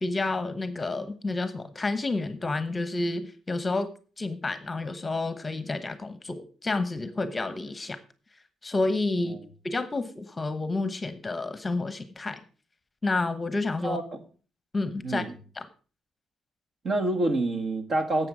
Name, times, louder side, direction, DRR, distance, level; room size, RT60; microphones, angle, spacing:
voice 1, 0.0-3.9 4.2-8.0 8.6-9.4 9.6-12.4 13.0-14.0 14.7-15.3 15.6-15.7, left 3 dB, 20° left, 1.0 m, -30 dB
voice 2, 13.8-14.2 15.0-15.4 16.8-18.3, right 2 dB, 50° right, 1.9 m, -27 dB
12.0 x 7.9 x 5.0 m
cardioid pair, 125°, 0 cm